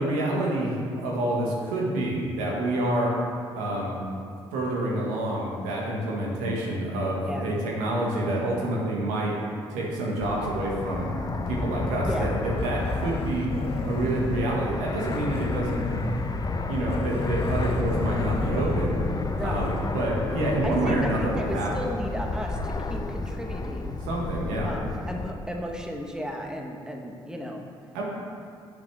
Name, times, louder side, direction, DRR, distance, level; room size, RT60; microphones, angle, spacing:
voice 1, 0.0-3.2 3.5-4.0 4.5-9.4 9.7-11.1 11.5-13.5 13.8-15.9 16.7-19.0 19.4-21.9 24.1-24.7 27.9-28.0, right 1 dB, 75° right, -3 dB, 1.7 m, -27 dB
voice 2, 7.2-7.6 12.0-12.4 19.4-19.7 20.6-24.0 24.6-27.6, equal, 5° right, 1 dB, 1.3 m, -35 dB
Fixed-wing aircraft airplane, 10.2-25.3, left 3 dB, 30° left, 0.8 m, -31 dB
Growling, 12.5-19.9, left 2 dB, 50° left, 1.2 m, -35 dB
11.0 x 7.3 x 3.5 m, 2.3 s
hypercardioid pair, 45°, 13 cm